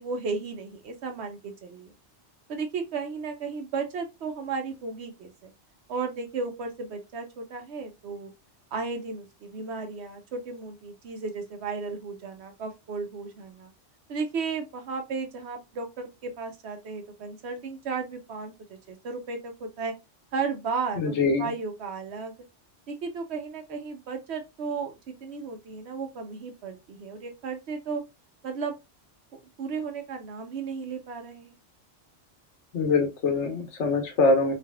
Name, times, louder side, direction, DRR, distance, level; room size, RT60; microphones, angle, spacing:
voice 1, 0.0-1.9 2.5-5.5 5.9-8.3 8.7-13.7 14.1-19.9 20.3-22.3 22.9-28.0 28.4-28.8 29.6-31.5, right 4 dB, 70° right, 0.9 m, -34 dB
voice 2, 21.0-21.5 32.7-34.5, left 3 dB, 80° left, 1.1 m, -23 dB
3.3 x 2.5 x 2.3 m
omnidirectional pair, 1.2 m